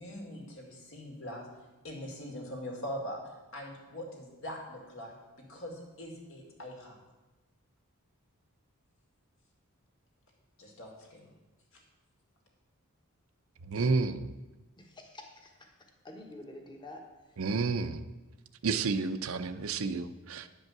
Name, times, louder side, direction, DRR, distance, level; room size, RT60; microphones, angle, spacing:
voice 1, 0.0-1.5 1.8-3.2 3.5-7.0 10.6-11.3 11.7-11.8, equal, 65° left, 0 dB, 2.4 m, -42 dB
voice 2, 13.7-14.3 17.4-18.0 18.6-20.5, right 4 dB, 65° right, 11 dB, 0.5 m, -30 dB
voice 3, 14.8-17.5, left 1 dB, 20° left, 2 dB, 1.2 m, -49 dB
10.0 x 5.4 x 7.2 m, 1.1 s
head